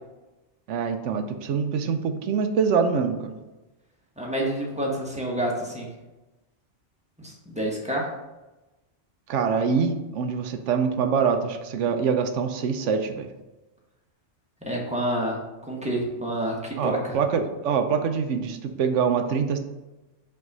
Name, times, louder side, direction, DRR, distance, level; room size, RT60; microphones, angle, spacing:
voice 1, 0.7-3.3 9.3-13.3 16.8-19.6, right 6 dB, 80° right, 7 dB, 1.0 m, -24 dB
voice 2, 4.2-5.9 7.2-8.1 14.6-15.4 15.7-17.2, right 1 dB, 5° right, -3 dB, 1.1 m, -28 dB
5.4 x 3.4 x 5.3 m, 1.1 s
omnidirectional pair, 1.2 m